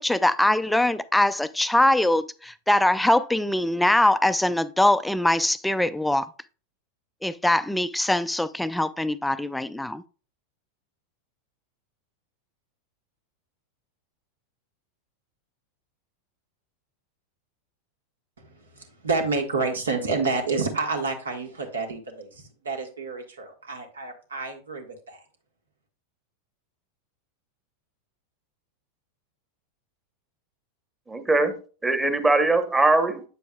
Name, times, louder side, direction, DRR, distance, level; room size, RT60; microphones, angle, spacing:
voice 1, 0.0-6.3 7.2-10.0, left 1 dB, 5° left, 0.4 m, -22 dB
voice 2, 18.7-25.2, right 4 dB, 75° right, 1.4 m, -29 dB
voice 3, 31.1-33.2, right 2 dB, 15° right, 1.1 m, -22 dB
8.3 x 6.9 x 2.3 m
figure-of-eight pair, 90°, 0 cm